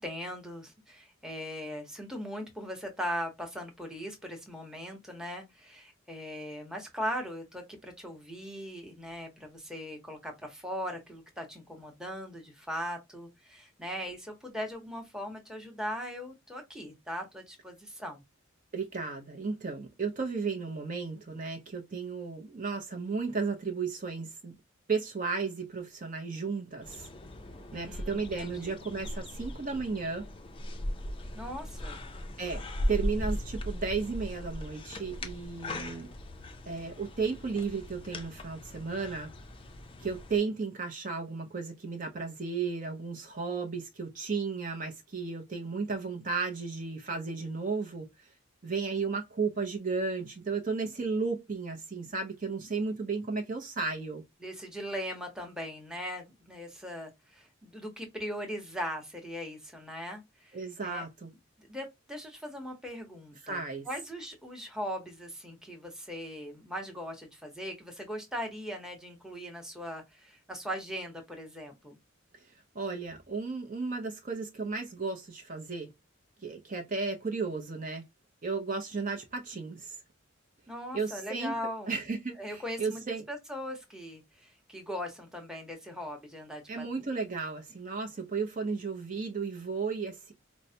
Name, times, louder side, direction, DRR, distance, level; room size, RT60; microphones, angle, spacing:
voice 1, 0.0-18.2 27.7-28.8 31.3-32.0 54.4-61.0 61.6-72.0 80.7-81.9 82.4-83.0 83.3-86.8, equal, 5° right, 0.8 m, -39 dB
voice 2, 18.7-24.6 24.9-27.1 27.7-30.3 32.4-32.6 32.9-36.1 36.7-39.3 40.0-48.3 48.6-54.2 60.5-61.3 63.4-63.9 72.4-75.9 76.4-78.0 78.4-80.0 80.9-81.5 81.9-83.2 86.7-90.3, right 4 dB, 40° right, 0.6 m, -34 dB
sound 1, 26.8-40.4, left 1 dB, 25° left, 0.4 m, -38 dB
4.5 x 2.0 x 2.7 m
head